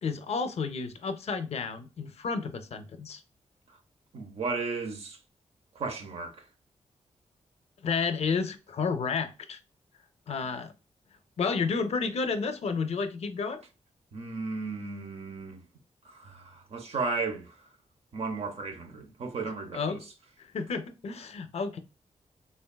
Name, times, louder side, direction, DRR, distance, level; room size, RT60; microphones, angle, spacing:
voice 1, 0.0-3.2 7.8-9.6 10.3-10.7 11.4-13.6 19.7-20.0 20.4-21.8, left 5 dB, 60° left, 0.4 m, -31 dB
voice 2, 4.1-5.2 5.8-6.4 14.1-15.6 16.0-17.6 18.1-20.0, right 4 dB, 55° right, 0.6 m, -35 dB
3.4 x 2.2 x 2.2 m
wide cardioid pair, 135°, 12 cm